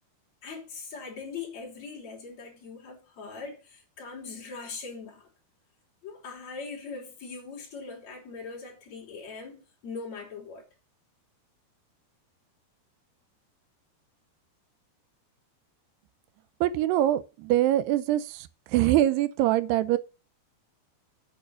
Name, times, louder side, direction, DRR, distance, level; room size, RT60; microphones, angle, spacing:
voice 1, 0.4-5.3 6.0-10.6, left 4 dB, 45° left, 4.3 m, -41 dB
voice 2, 16.6-18.5 18.7-20.0, right 13 dB, 85° right, 2.8 m, -23 dB
8.8 x 6.8 x 6.7 m
omnidirectional pair, 4.7 m